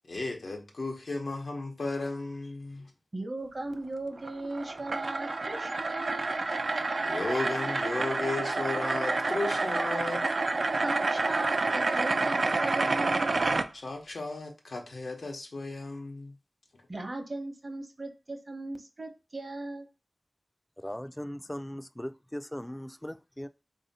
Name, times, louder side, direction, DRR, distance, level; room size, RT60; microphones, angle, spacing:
voice 1, 0.1-2.9 7.0-10.3 13.7-16.3, left 2 dB, 85° left, 0.8 m, -35 dB
voice 2, 3.1-6.3 10.8-13.4 16.9-19.9, right 2 dB, 50° right, 0.9 m, -38 dB
sound 1, 4.2-13.7, right 3 dB, 75° right, 0.3 m, -29 dB
voice 3, 20.8-23.5, equal, 10° left, 0.3 m, -39 dB
3.5 x 2.7 x 4.0 m
cardioid pair, 45°, 0 cm